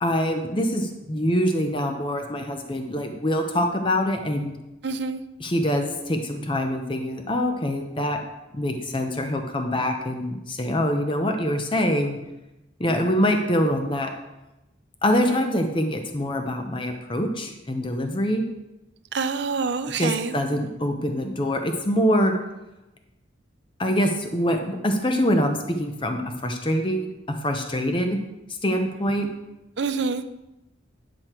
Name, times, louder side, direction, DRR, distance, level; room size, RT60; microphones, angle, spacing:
voice 1, 0.0-4.5 5.4-8.2 8.5-12.2 12.8-14.1 15.0-18.4 20.0-22.3 23.8-27.1 27.4-28.2 28.6-29.3, equal, 25° left, 4 dB, 0.8 m, -24 dB
voice 2, 4.8-5.2 19.1-20.4 29.8-30.2, right 4 dB, 65° right, 10 dB, 0.5 m, -26 dB
10.0 x 6.3 x 4.4 m, 0.96 s
head